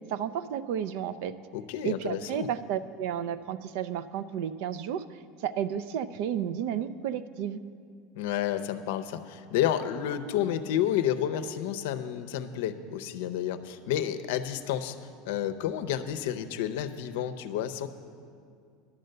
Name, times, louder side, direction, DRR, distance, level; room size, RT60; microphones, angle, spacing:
voice 1, 0.1-1.3 1.8-5.0 5.4-7.6, right 9 dB, 65° right, 15 dB, 0.4 m, -32 dB
voice 2, 1.5-2.5 8.2-15.0 15.2-17.9, left 10 dB, 75° left, 9 dB, 0.6 m, -30 dB
11.5 x 7.9 x 6.6 m, 2.3 s
supercardioid pair, 160°, 0 cm